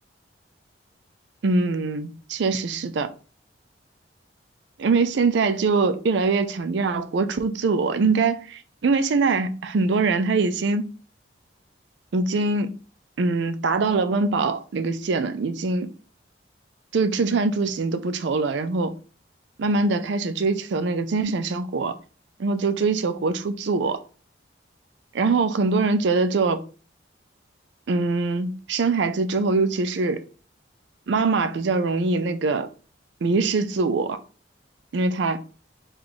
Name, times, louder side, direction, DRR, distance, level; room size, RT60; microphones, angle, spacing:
voice 1, 1.4-3.1 4.8-10.9 12.1-12.7 13.2-15.9 16.9-18.9 19.6-22.0 22.4-24.0 25.1-26.6 27.9-30.2 31.1-32.7 33.2-34.2 34.9-35.4, right 3 dB, 70° right, 0.4 m, -23 dB
3.9 x 2.4 x 4.6 m
head